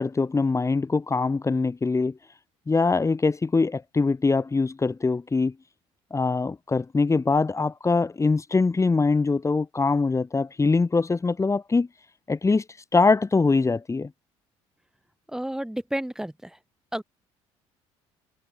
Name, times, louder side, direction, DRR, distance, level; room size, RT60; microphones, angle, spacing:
voice 1, 0.0-2.2 2.7-5.5 6.1-11.9 12.3-12.6 12.9-14.1, left 4 dB, 20° left, 1.4 m, -23 dB
voice 2, 15.3-16.6 16.9-17.0, right 1 dB, 5° right, 1.1 m, -31 dB
supercardioid pair, 75°, 14 cm